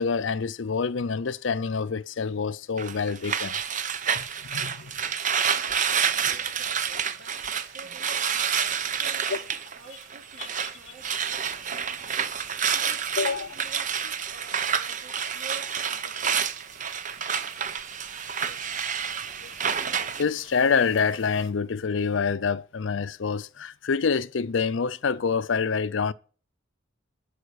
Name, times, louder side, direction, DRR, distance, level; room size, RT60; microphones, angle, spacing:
voice 1, 0.0-3.5 4.2-4.9 5.2-5.3 9.3-9.4 10.4-10.5 13.2-13.5 18.5-18.6 19.4-19.5 19.8-26.1, left 5 dB, 70° left, 0.5 m, -27 dB
sound 1, 2.8-10.7 11.0-20.2, right 7 dB, 40° right, 0.8 m, -29 dB
sound 2, 3.3-21.5, right 5 dB, 80° right, 1.8 m, -53 dB
voice 2, 5.4-16.4, right 2 dB, 55° right, 3.1 m, -50 dB
11.5 x 5.0 x 8.3 m
head